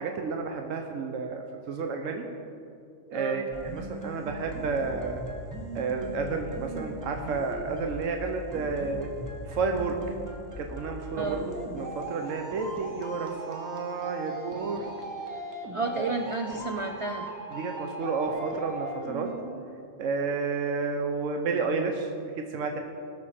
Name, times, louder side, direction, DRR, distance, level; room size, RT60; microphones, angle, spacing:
voice 1, 0.0-2.2 3.1-5.2 5.7-9.1 9.5-10.0 10.6-14.9 15.9-16.1 17.5-19.3 20.0-22.1 22.4-22.8, right 4 dB, 80° right, 4 dB, 1.1 m, -31 dB
voice 2, 3.1-3.5 11.2-11.5 15.7-17.3, right 3 dB, 50° right, 4 dB, 0.3 m, -31 dB
sound 1, 3.5-19.5, right 1 dB, 15° right, 1.2 m, -39 dB
17.5 x 6.7 x 4.3 m, 2.5 s
omnidirectional pair, 1.3 m